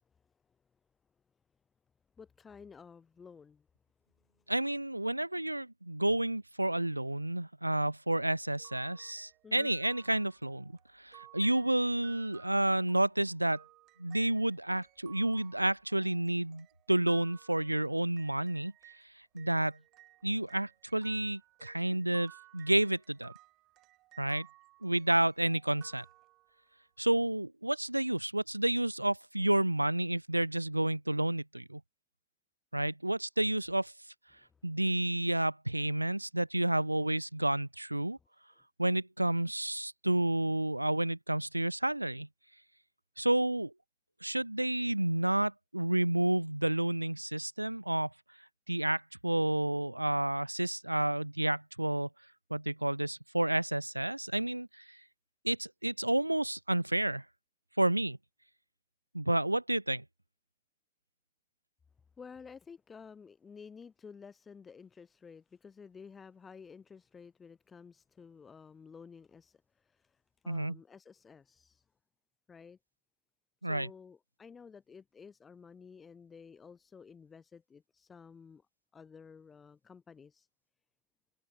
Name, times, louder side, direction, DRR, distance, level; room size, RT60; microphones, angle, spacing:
voice 1, 2.2-3.7 9.4-9.7 34.3-34.6 62.2-71.8 72.5-72.8 73.6-78.7 78.9-80.5, left 6 dB, 15° left, 4.0 m, -53 dB
voice 2, 4.5-10.7 11.0-13.6 14.0-18.7 19.3-19.8 20.2-23.3 24.2-24.5 24.8-26.0 27.0-31.8 32.7-33.9 34.6-38.2 38.8-42.3 43.2-43.7 44.2-48.1 48.7-52.1 52.5-55.0 55.4-57.2 57.8-58.2 59.1-60.0 70.5-70.8 73.6-73.9, right 1 dB, 85° right, 2.4 m, -30 dB
sound 1, 8.6-19.0 19.4-26.7, right 17 dB, 35° right, 7.5 m, -59 dB
figure-of-eight pair, 90°, 0 cm